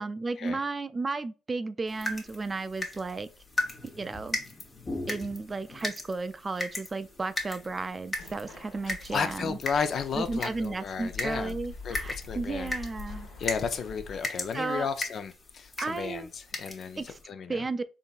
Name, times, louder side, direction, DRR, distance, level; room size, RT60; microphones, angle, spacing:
voice 1, 0.0-3.3 3.8-4.4 5.1-9.6 10.1-13.3 14.5-14.9 15.8-16.3 17.0-17.2 17.5-17.8, right 3 dB, 30° right, 0.3 m, -33 dB
sound 1, 1.9-17.2, left 2 dB, 35° left, 1.1 m, -38 dB
sound 2, 8.1-14.2, left 4 dB, 85° left, 1.2 m, -44 dB
voice 2, 9.1-11.5 11.8-12.7 13.4-17.6, left 6 dB, 60° left, 0.5 m, -33 dB
3.7 x 2.7 x 2.4 m
supercardioid pair, 60°, 0 cm